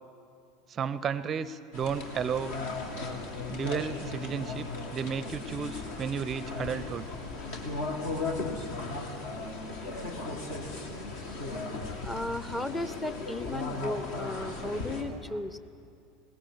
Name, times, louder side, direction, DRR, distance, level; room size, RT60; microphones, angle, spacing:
voice 1, 0.7-2.6 3.5-4.7 4.9-7.1 14.6-15.4, right 7 dB, 30° right, 16 dB, 0.6 m, -33 dB
sound 1, 1.7-15.0, left 3 dB, 60° left, 2.4 m, -36 dB
voice 2, 12.0-15.6, left 2 dB, 10° left, 12 dB, 0.8 m, -35 dB
21.0 x 18.0 x 8.5 m, 2.6 s
figure-of-eight pair, 75°, 0 cm